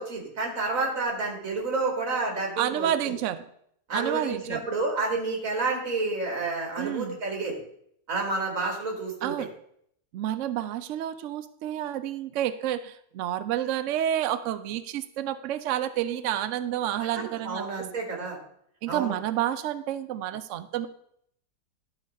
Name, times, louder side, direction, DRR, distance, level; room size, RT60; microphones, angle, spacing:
voice 1, 0.0-2.9 3.9-7.6 8.1-9.5 17.4-18.4 18.9-19.1, right 3 dB, 50° right, 1 dB, 2.3 m, -29 dB
voice 2, 2.6-3.4 3.9-4.6 6.8-7.2 9.2-9.5 10.1-17.7 18.8-20.9, right 11 dB, 80° right, 11 dB, 0.6 m, -29 dB
11.5 x 4.0 x 5.2 m, 0.69 s
omnidirectional pair, 1.9 m